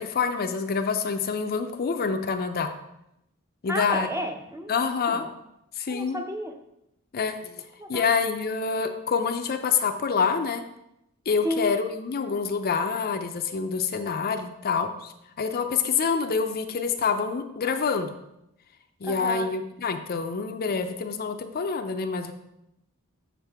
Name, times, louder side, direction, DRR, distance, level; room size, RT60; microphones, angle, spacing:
voice 1, 0.0-2.7 3.6-4.1 4.7-5.3 5.8-6.2 7.1-7.6 7.9-10.6 11.3-18.1 19.0-22.3, left 5 dB, 45° left, 7 dB, 0.5 m, -27 dB
voice 2, 3.7-4.7 5.1-5.3 5.9-6.5 7.8-8.1 11.4-11.7 19.0-19.5, equal, 15° right, 4 dB, 0.6 m, -32 dB
7.3 x 5.9 x 3.5 m, 0.84 s
head